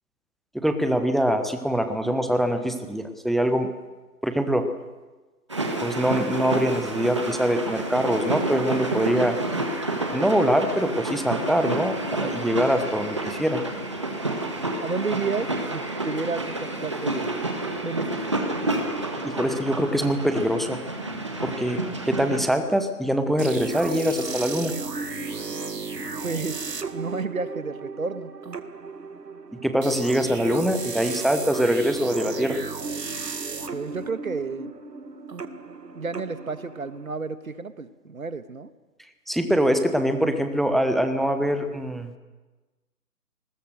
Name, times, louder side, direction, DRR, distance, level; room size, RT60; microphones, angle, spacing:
voice 1, 0.5-3.7 4.2-4.7 5.8-9.4 10.1-13.6 19.2-20.8 21.4-24.7 29.5-32.6 39.3-42.1, equal, ahead, 8 dB, 0.7 m, -23 dB
sound 1, 5.5-22.4, right 2 dB, 20° right, 1.7 m, -29 dB
voice 2, 14.8-17.4 17.8-18.2 26.2-26.6 26.9-28.3 33.7-34.7 35.9-38.7, right 4 dB, 60° right, 12 dB, 1.7 m, -31 dB
sound 2, 23.4-37.1, right 4 dB, 85° right, 2.2 m, -35 dB
30.0 x 20.0 x 6.5 m, 1.2 s
hypercardioid pair, 180°, 47 cm